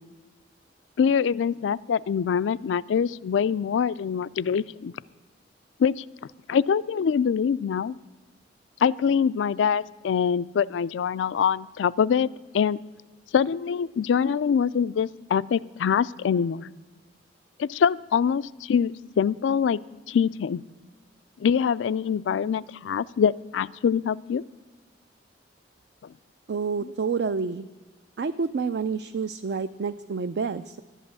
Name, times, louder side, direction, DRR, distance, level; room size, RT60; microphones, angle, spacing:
voice 1, 1.0-4.9 5.8-6.0 6.5-8.0 8.8-12.8 13.3-16.7 17.6-19.8 20.1-20.6 21.4-24.4 26.0-26.1 26.8-26.9, left 7 dB, 90° left, 19 dB, 0.3 m, -24 dB
voice 2, 26.5-27.6 28.2-30.8, right 5 dB, 65° right, 11 dB, 0.4 m, -28 dB
11.5 x 8.3 x 8.6 m, 1.2 s
head